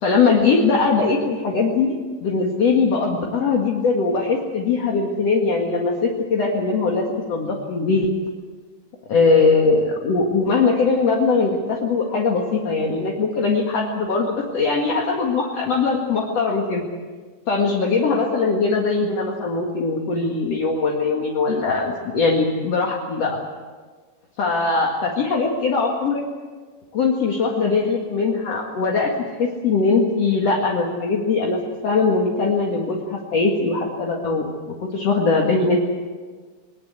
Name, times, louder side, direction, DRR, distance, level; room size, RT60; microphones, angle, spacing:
voice 1, 0.0-1.9 2.2-8.1 9.1-16.9 17.5-23.4 24.4-26.2 26.9-29.1 29.4-35.8, left 4 dB, 45° left, -1 dB, 2.3 m, -21 dB
21.5 x 21.0 x 8.3 m, 1.4 s
omnidirectional pair, 5.4 m